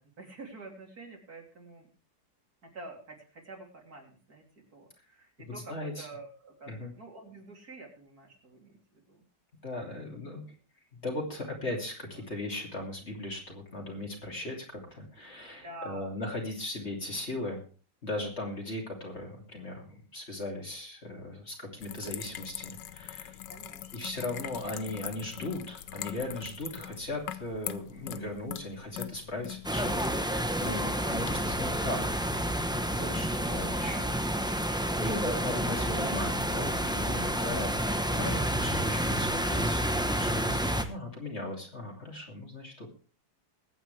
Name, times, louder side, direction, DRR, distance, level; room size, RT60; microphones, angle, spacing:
voice 1, 0.2-1.9 2.6-4.5 4.7-9.2 9.9-10.0 12.1-12.2 15.6-16.2 17.2-17.3 23.5-23.9 37.4-37.7 40.6-40.9, right 2 dB, 50° right, 0 dB, 3.6 m, -48 dB
voice 2, 5.7-6.1 6.7-6.9 9.6-10.4 11.0-17.6 18.0-23.4 23.9-32.2 32.9-34.2 34.6-37.7 38.1-42.9, left 1 dB, 35° left, 0 dB, 2.9 m, -38 dB
sound 1, 21.8-33.7, left 12 dB, 75° left, 1.3 m, -43 dB
sound 2, 29.6-40.8, equal, 5° right, 0.4 m, -29 dB
21.5 x 9.0 x 3.3 m, 0.37 s
omnidirectional pair, 2.0 m